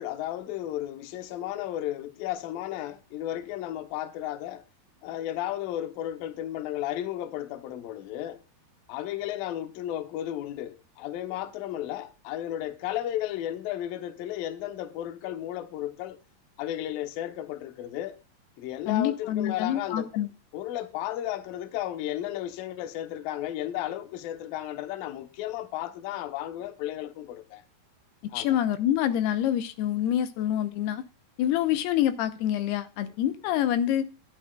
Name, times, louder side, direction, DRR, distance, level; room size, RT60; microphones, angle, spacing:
voice 1, 0.0-4.6 5.0-8.4 8.9-16.2 16.6-18.2 18.6-20.1 20.5-27.6 28.3-28.6, left 13 dB, 70° left, 2.6 m, -34 dB
voice 2, 18.9-20.3 28.3-31.0 31.4-34.1, left 11 dB, 85° left, 2.9 m, -26 dB
14.5 x 10.0 x 2.3 m
omnidirectional pair, 4.6 m